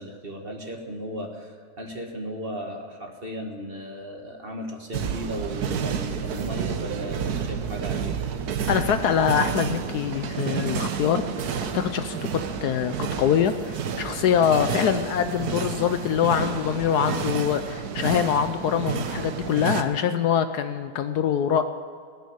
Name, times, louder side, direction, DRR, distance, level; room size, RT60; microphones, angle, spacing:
voice 1, 0.0-8.2, equal, 35° right, 2 dB, 1.6 m, -36 dB
sound 1, 4.9-19.8, right 7 dB, 65° right, 1.3 m, -30 dB
voice 2, 8.7-11.2 11.7-21.6, left 8 dB, 70° left, 9 dB, 1.1 m, -24 dB
19.0 x 6.8 x 9.5 m, 2.3 s
omnidirectional pair, 1.9 m